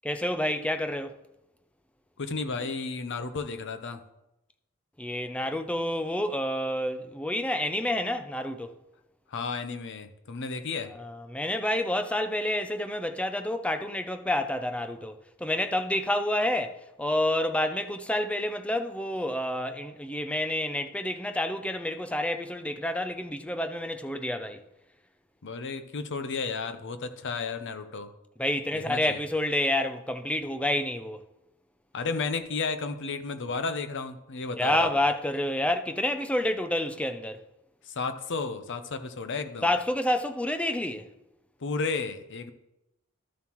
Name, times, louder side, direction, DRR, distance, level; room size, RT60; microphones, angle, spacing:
voice 1, 0.0-1.2 5.0-8.7 11.0-24.6 28.4-31.2 34.6-37.4 39.6-41.1, left 1 dB, 5° left, 0.5 m, -29 dB
voice 2, 2.2-4.0 9.3-10.9 25.4-28.1 28.7-29.2 31.9-35.0 37.8-39.7 41.6-42.5, left 4 dB, 60° left, 0.7 m, -33 dB
12.5 x 7.1 x 3.0 m
head